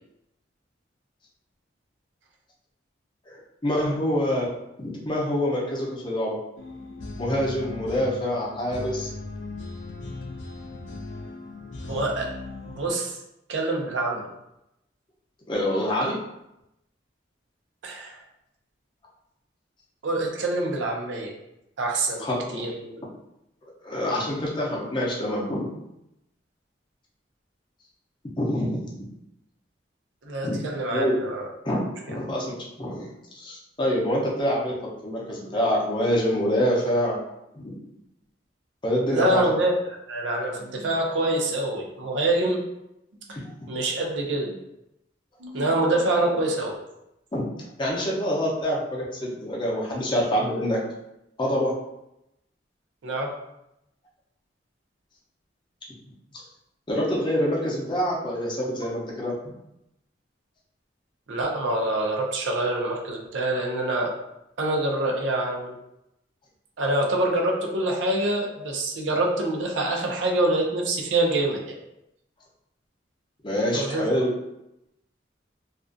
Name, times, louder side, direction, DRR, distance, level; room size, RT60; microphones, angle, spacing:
voice 1, 3.3-4.5 4.8-6.4 7.2-9.1 15.5-16.1 22.2-22.6 23.8-25.7 28.4-28.7 30.4-30.5 30.9-31.2 31.7-31.8 32.1-33.1 33.3-34.7 35.0-37.2 37.5-37.8 38.8-39.4 47.3-47.4 47.8-50.8 51.4-51.7 56.9-59.3 73.4-74.3, equal, 25° left, -3 dB, 0.5 m, -26 dB
sound 1, 6.6-12.9, left 2 dB, 90° left, 0.4 m, -38 dB
voice 2, 11.9-12.3 12.6-13.2 13.5-14.3 17.8-18.2 20.0-21.3 21.8-23.0 30.2-31.5 39.1-42.6 43.3-43.4 43.7-44.5 45.4-46.8 53.0-53.3 61.3-64.1 64.6-65.7 66.8-71.6 73.7-74.1, right 2 dB, 80° right, 0 dB, 0.5 m, -25 dB
2.4 x 2.2 x 2.5 m, 0.86 s
head